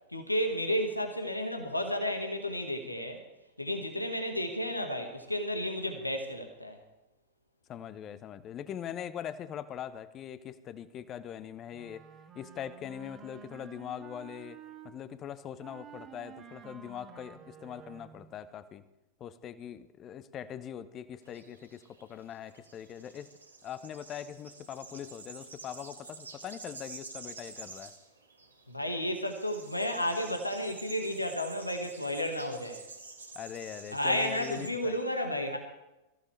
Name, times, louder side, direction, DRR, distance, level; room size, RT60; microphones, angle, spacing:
voice 1, 0.1-3.2 3.6-6.8 28.7-32.8 33.9-35.6, equal, 85° left, 5 dB, 1.7 m, -32 dB
voice 2, 7.7-12.0 12.3-14.6 14.8-18.8 19.2-23.3 23.6-27.9 33.3-35.0, left 9 dB, 30° left, 14 dB, 0.9 m, -42 dB
Wind instrument woodwind instrument, 11.7-14.9 15.6-18.3, right 8 dB, 25° right, 1.4 m, -51 dB
sound 1, 21.2-34.7, right 3 dB, 80° right, 2.5 m, -49 dB
23.5 x 15.0 x 3.4 m, 1.0 s
figure-of-eight pair, 90°, 0 cm